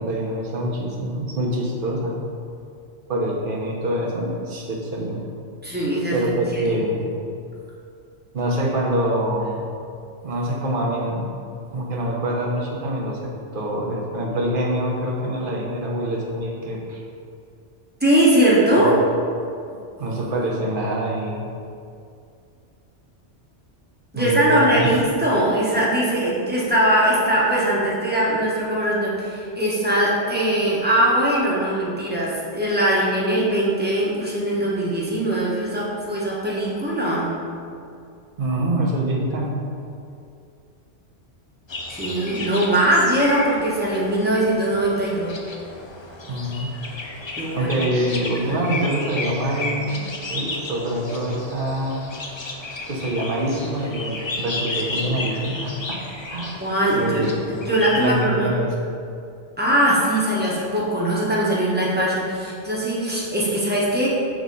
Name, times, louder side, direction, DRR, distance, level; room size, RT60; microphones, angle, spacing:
voice 1, 0.0-2.2 3.1-5.3 6.1-7.1 8.3-9.7 10.2-11.3 11.7-17.0 18.8-18.9 20.0-21.5 24.1-24.9 38.4-39.5 46.3-46.7 47.5-49.9 50.3-52.0 52.9-56.0 56.3-56.6 56.9-57.6 57.9-58.7, right 1 dB, 50° right, -2 dB, 1.1 m, -25 dB
voice 2, 5.6-6.8 18.0-18.9 24.1-37.3 42.0-45.3 47.4-47.7 56.6-58.5 59.6-64.1, right 1 dB, 10° right, -6 dB, 1.2 m, -21 dB
sound 1, 41.7-58.2, left 2 dB, 40° left, 0.4 m, -33 dB
6.3 x 4.0 x 5.4 m, 2.4 s
omnidirectional pair, 1.2 m